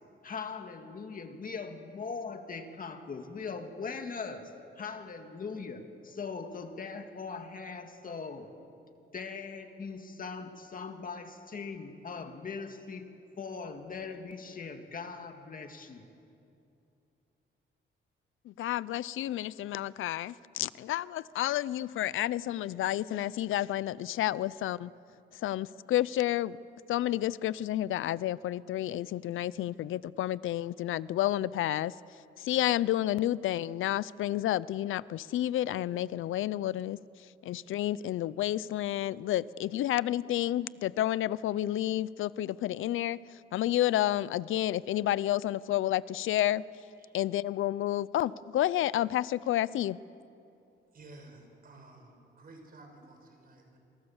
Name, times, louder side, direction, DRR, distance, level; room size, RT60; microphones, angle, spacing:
voice 1, 0.2-4.5 4.8-8.5 9.1-13.1 13.4-16.0, left 5 dB, 45° left, 5 dB, 2.1 m, -40 dB
voice 2, 18.4-24.9 25.3-26.6 26.9-46.6 47.1-50.0, left 13 dB, 90° left, 20 dB, 0.5 m, -30 dB
voice 3, 50.9-53.8, right 2 dB, 45° right, 3 dB, 5.8 m, -53 dB
27.0 x 25.5 x 7.2 m, 2.6 s
cardioid pair, 120°, 20 cm